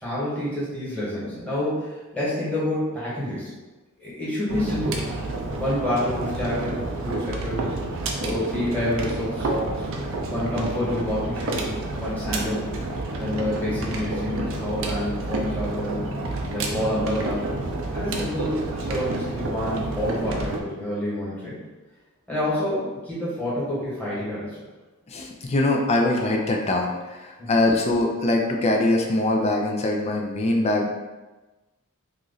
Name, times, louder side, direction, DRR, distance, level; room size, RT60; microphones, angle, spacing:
voice 1, 0.0-3.5 4.0-5.0 5.6-7.7 8.2-9.9 10.3-12.7 13.2-16.1 16.5-17.4 17.9-21.5 22.3-24.5 27.4-27.6, left 1 dB, 5° left, -9 dB, 1.3 m, -28 dB
sound 1, 4.5-20.6, right 2 dB, 60° right, 0.5 m, -29 dB
voice 2, 25.1-30.9, left 2 dB, 30° left, 1 dB, 0.4 m, -23 dB
3.0 x 2.5 x 3.9 m, 1.2 s
head